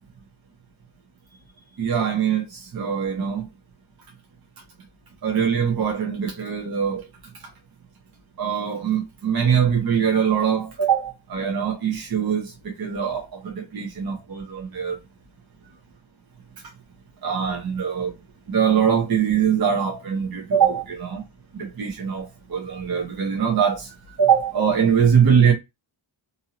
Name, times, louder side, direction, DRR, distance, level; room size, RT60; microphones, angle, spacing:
voice 1, 1.8-3.5 5.2-7.1 8.4-15.0 17.2-18.1 18.5-21.2 21.5-25.5, right 7 dB, 45° right, 0.7 m, -22 dB
2.7 x 2.7 x 2.8 m
wide cardioid pair, 170°, 49 cm